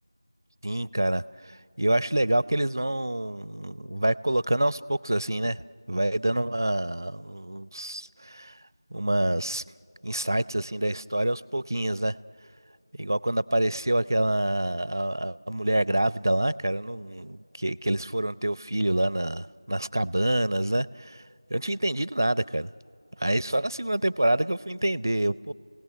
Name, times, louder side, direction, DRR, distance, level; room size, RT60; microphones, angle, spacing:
voice 1, 0.6-5.6 5.9-8.6 8.9-9.6 10.0-12.2 12.9-21.2 21.5-22.7 23.2-25.5, right 1 dB, 55° right, 0.5 m, -27 dB
28.5 x 17.5 x 9.4 m
figure-of-eight pair, 175°, 2 cm